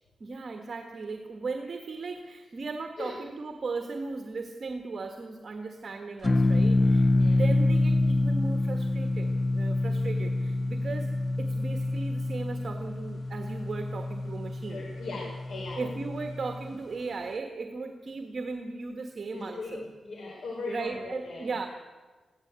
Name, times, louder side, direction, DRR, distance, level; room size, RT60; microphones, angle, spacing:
voice 1, 0.2-14.9 15.8-19.9 20.7-21.7, right 4 dB, 45° right, 5 dB, 1.5 m, -37 dB
sound 1, 6.2-16.8, left 2 dB, 25° left, 0.9 m, -27 dB
voice 2, 14.7-16.0 19.3-21.5, left 3 dB, 75° left, -2 dB, 4.6 m, -39 dB
22.0 x 15.5 x 8.2 m, 1.4 s
wide cardioid pair, 140°, 0 cm